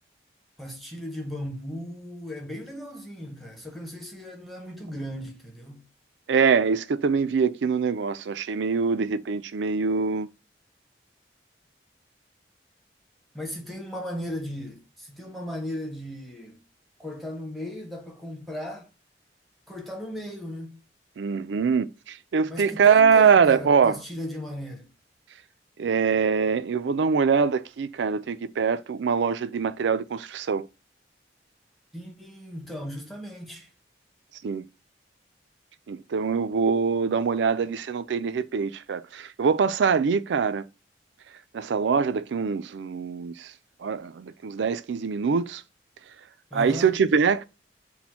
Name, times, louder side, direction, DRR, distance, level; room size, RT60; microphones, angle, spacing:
voice 1, 0.6-5.9 13.3-16.6 17.0-18.9 19.7-20.8 22.5-24.9 31.9-33.7 46.5-47.0, equal, ahead, 0.9 m, -36 dB
voice 2, 6.3-10.3 21.2-24.0 25.8-30.7 34.4-34.6 35.9-40.6 41.5-43.5 43.8-45.6 46.5-47.4, right 6 dB, 80° right, 0.4 m, -23 dB
4.2 x 2.2 x 4.2 m
head